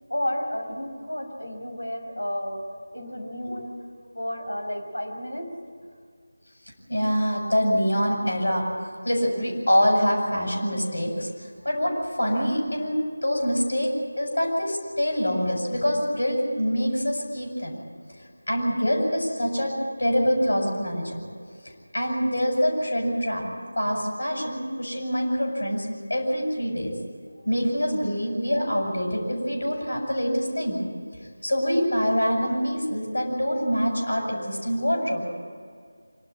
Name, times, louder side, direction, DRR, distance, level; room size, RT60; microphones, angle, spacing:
voice 1, 0.1-2.7 2.9-3.7 4.1-5.5, equal, 80° left, 3 dB, 5.4 m, -31 dB
voice 2, 6.9-8.7 9.0-11.3 11.6-12.9 13.2-13.9 14.2-17.8 18.5-21.2 21.9-23.5 23.8-26.9 27.5-30.8 31.4-35.4, equal, 60° left, 0 dB, 7.3 m, -25 dB
26.5 x 12.5 x 9.7 m, 2.1 s
figure-of-eight pair, 165°, 0 cm